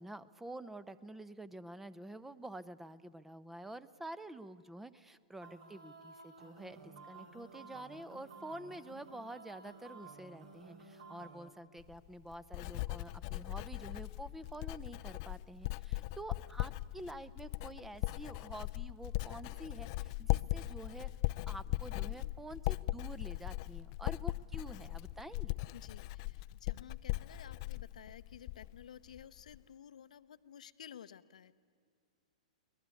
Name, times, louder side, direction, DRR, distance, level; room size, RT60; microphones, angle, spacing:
voice 1, 0.0-21.1 21.5-25.5, right 1 dB, 5° right, 17 dB, 0.8 m, -48 dB
sound 1, 5.4-11.5, right 4 dB, 65° right, 3.4 m, -54 dB
Writing, 11.8-28.8 29.1-29.6, left 19 dB, 45° left, 0.5 m, -39 dB
voice 2, 25.7-31.6, left 9 dB, 75° left, 13 dB, 0.8 m, -53 dB
23.5 x 19.0 x 8.4 m, 2.2 s
hypercardioid pair, 115°, 4 cm